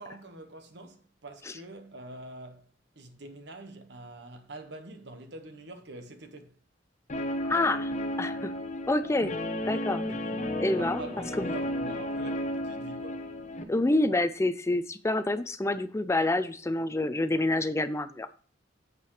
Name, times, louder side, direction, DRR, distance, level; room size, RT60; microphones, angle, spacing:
voice 1, 0.0-6.6 10.0-13.3, right 2 dB, 65° right, 1.3 m, -45 dB
Guitar, 7.1-13.6, left 1 dB, 40° left, 0.9 m, -33 dB
voice 2, 7.5-7.9 8.2-8.5 8.9-9.3 9.6-10.0 10.6-11.0 11.4-11.5 13.7-18.4, left 2 dB, 15° left, 0.4 m, -27 dB
8.7 x 7.5 x 3.1 m
head